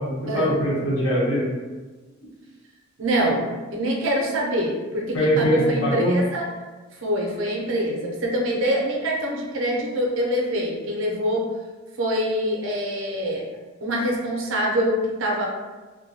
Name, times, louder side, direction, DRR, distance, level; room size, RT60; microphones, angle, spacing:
voice 1, 0.0-1.5 2.2-2.3 5.1-6.2, equal, 75° left, -6 dB, 0.9 m, -22 dB
voice 2, 3.0-6.5 7.0-11.5 12.0-13.5 13.8-15.5, equal, 75° right, -1 dB, 0.6 m, -25 dB
2.3 x 2.1 x 2.7 m, 1.3 s
head